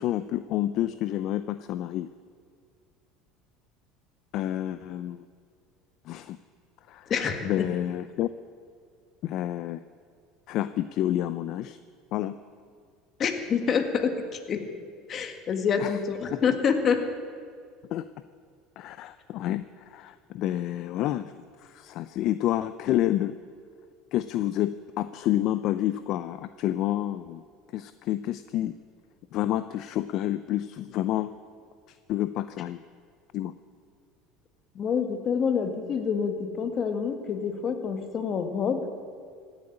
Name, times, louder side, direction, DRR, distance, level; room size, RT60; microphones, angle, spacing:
voice 1, 0.0-2.1 4.3-5.2 6.1-6.4 6.9-7.1 7.4-8.3 9.2-9.8 10.5-11.8 12.1-12.3 15.8-15.9 16.3-16.4 17.9-18.0 18.8-21.3 21.6-23.4 24.1-27.4 27.7-28.7 29.3-31.3 32.1-32.8 33.3-33.5, left 13 dB, 55° left, 13 dB, 0.5 m, -29 dB
voice 2, 7.1-7.7 13.2-14.6 15.1-17.0 34.8-38.8, left 6 dB, 40° left, 6 dB, 1.8 m, -27 dB
16.5 x 8.2 x 9.8 m, 2.2 s
supercardioid pair, 110°, 0 cm